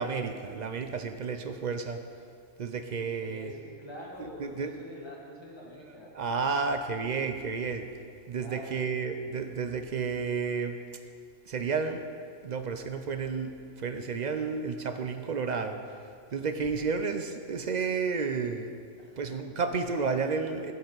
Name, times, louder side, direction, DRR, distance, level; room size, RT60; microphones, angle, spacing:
voice 1, 0.0-2.0 2.6-3.6 4.2-4.8 5.7-7.9 8.3-10.8 11.4-12.1 12.4-18.8 19.2-20.7, right 5 dB, 55° right, 7 dB, 0.5 m, -32 dB
voice 2, 3.2-6.2 8.3-8.9 19.0-19.2, left 1 dB, 20° left, -3 dB, 1.7 m, -45 dB
13.0 x 8.4 x 4.0 m, 2.3 s
omnidirectional pair, 1.3 m